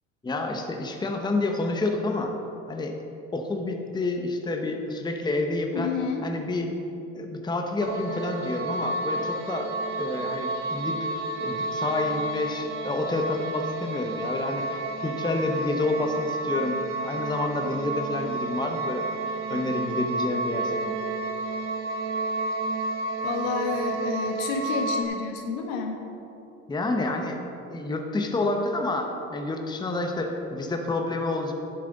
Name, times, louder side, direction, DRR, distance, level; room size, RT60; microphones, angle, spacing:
voice 1, 0.2-2.3 2.7-2.9 3.3-5.9 6.2-6.7 7.1-9.7 10.0-19.1 19.5-21.0 26.7-27.4 27.7-31.5, left 2 dB, 10° left, 3 dB, 0.9 m, -29 dB
voice 2, 5.7-6.3 23.2-26.0, left 5 dB, 70° left, 3 dB, 1.5 m, -30 dB
sound 1, 7.8-25.1, right 2 dB, 55° right, 1.2 m, -31 dB
11.0 x 7.6 x 3.9 m, 2.8 s
hypercardioid pair, 85°, 38 cm